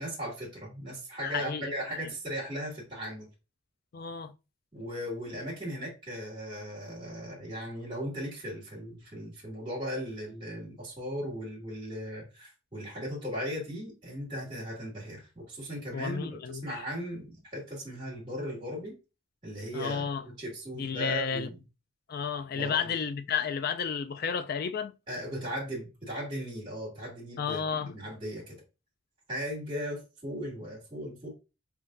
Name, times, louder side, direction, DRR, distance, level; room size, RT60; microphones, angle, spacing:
voice 1, 0.0-3.3 4.7-19.0 19.4-20.1 20.4-21.6 22.5-22.9 25.1-28.5 29.3-31.3, equal, 25° right, 2.2 m, -37 dB
voice 2, 1.2-1.7 3.9-4.3 15.9-16.6 19.7-20.2 20.7-21.5 22.1-24.9 27.4-28.0, left 6 dB, 45° left, 0.3 m, -32 dB
4.7 x 3.6 x 2.5 m
head